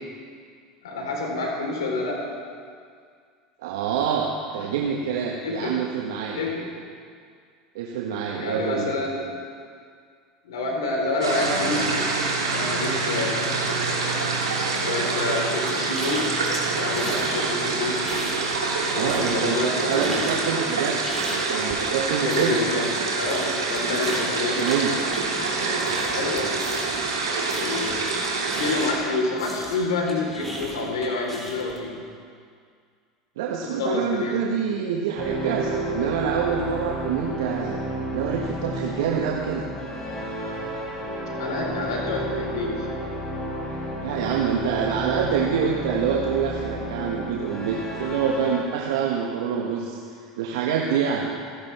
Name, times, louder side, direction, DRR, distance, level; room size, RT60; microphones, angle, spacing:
voice 1, 0.8-2.3 4.6-4.7 5.4-5.8 6.4-6.7 8.3-9.3 10.4-12.1 12.5-13.7 14.8-16.5 16.7-18.1 18.9-20.5 22.1-24.7 26.1-26.6 27.5-28.1 28.5-32.0 33.6-34.4 41.4-42.9, left 3 dB, 70° left, -1 dB, 3.8 m, -28 dB
voice 2, 3.6-4.3 4.5-6.4 7.7-8.9 18.9-22.6 24.4-25.0 25.5-25.9 33.4-37.8 38.1-39.6 43.7-50.0 50.4-51.3, right 7 dB, 65° right, -1 dB, 1.4 m, -26 dB
sound 1, 11.2-28.9, right 3 dB, 85° right, 2.9 m, -26 dB
sound 2, 15.7-17.3 17.6-18.8 19.0-29.0 29.4-31.8, equal, 10° left, 4.1 m, -37 dB
sound 3, 35.1-48.6, right 1 dB, 30° left, 4.1 m, -31 dB
28.0 x 11.0 x 3.5 m, 2.1 s
hypercardioid pair, 80°, 2 cm